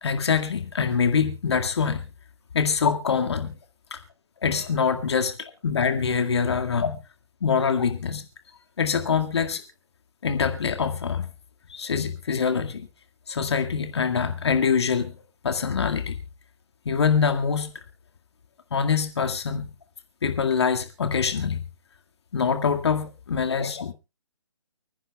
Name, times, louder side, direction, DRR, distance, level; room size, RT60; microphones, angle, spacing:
voice 1, 0.0-2.0 2.5-3.6 3.9-4.0 4.4-5.4 5.6-7.0 7.4-8.2 8.8-9.6 10.2-11.3 11.7-12.9 13.3-15.1 15.4-16.2 16.9-17.7 18.7-19.7 20.2-21.6 22.3-23.9, left 6 dB, 55° left, 6 dB, 2.0 m, -24 dB
29.5 x 10.0 x 2.3 m, 0.28 s
figure-of-eight pair, 145°, 17 cm